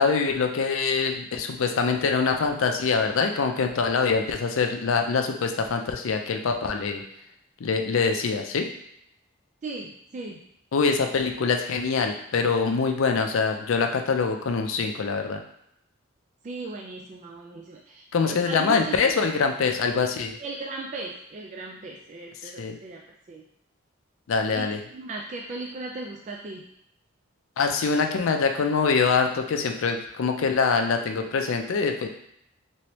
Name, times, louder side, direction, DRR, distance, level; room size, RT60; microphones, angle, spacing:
voice 1, 0.0-7.0 7.6-8.7 10.7-15.4 18.1-20.3 22.4-22.8 24.3-24.8 27.6-32.1, left 5 dB, 75° left, 5 dB, 0.4 m, -24 dB
voice 2, 9.6-10.4 16.4-19.0 20.4-23.0 23.3-23.4 24.5-26.7, right 3 dB, 35° right, -1 dB, 0.3 m, -37 dB
3.1 x 3.0 x 2.9 m, 0.76 s
head